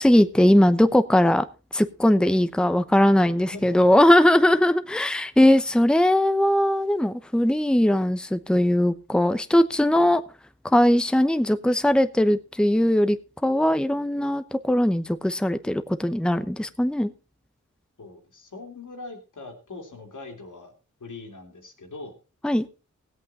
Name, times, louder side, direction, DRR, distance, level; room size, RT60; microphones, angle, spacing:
voice 1, 0.0-1.4 1.7-10.2 10.6-13.2 13.4-17.1 22.4-22.7, left 1 dB, 5° left, 11 dB, 0.8 m, -20 dB
voice 2, 3.5-3.8 18.0-20.7 21.0-22.1, left 3 dB, 85° left, 3 dB, 2.9 m, -41 dB
17.0 x 8.4 x 4.2 m, 0.32 s
wide cardioid pair, 60°, 30 cm